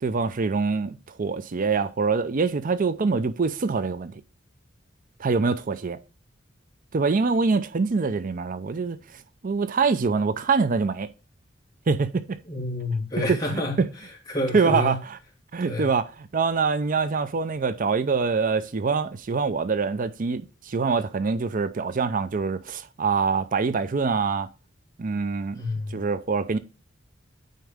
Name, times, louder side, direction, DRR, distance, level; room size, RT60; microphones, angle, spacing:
voice 1, 0.0-4.2 5.2-6.0 6.9-11.1 11.9-12.4 13.3-13.9 14.5-15.2 15.5-24.5 25.0-25.6 25.9-26.6, right 4 dB, 45° right, 0.5 m, -25 dB
voice 2, 12.5-13.8 14.3-15.0 15.6-15.9 25.5-26.0, left 2 dB, 20° left, 2.8 m, -28 dB
9.3 x 4.2 x 3.5 m
head